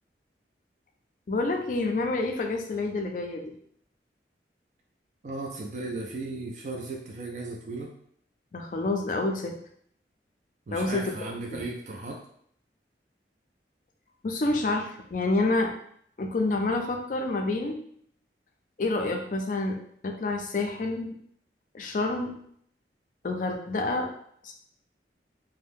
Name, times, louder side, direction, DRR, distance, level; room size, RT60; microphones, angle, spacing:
voice 1, 1.3-3.5 8.5-9.5 10.7-11.0 11.5-11.6 14.2-15.7 16.2-17.8 18.8-19.8 20.0-21.2 21.7-22.3 23.2-24.1 24.4-24.5, left 2 dB, 45° left, 3 dB, 0.4 m, -28 dB
voice 2, 5.2-7.9 10.7-12.2, right 2 dB, 40° right, -1 dB, 0.4 m, -36 dB
2.6 x 2.1 x 3.5 m, 0.65 s
head